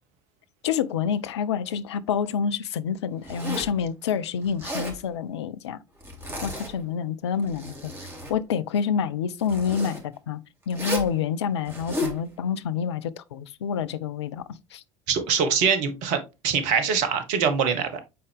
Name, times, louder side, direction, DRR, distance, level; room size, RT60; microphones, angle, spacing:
voice 1, 0.6-5.8 6.4-7.9 8.3-10.4 10.7-14.8, left 7 dB, 70° left, 0.6 m, -28 dB
Zipper (clothing), 3.2-3.8 4.5-5.0 6.0-6.9 7.3-8.4 9.4-10.0 10.7-11.1 11.7-12.2, equal, 15° right, 3.1 m, -33 dB
voice 2, 15.1-18.0, right 6 dB, 55° right, 1.4 m, -23 dB
8.5 x 4.2 x 3.4 m
figure-of-eight pair, 65°, 15 cm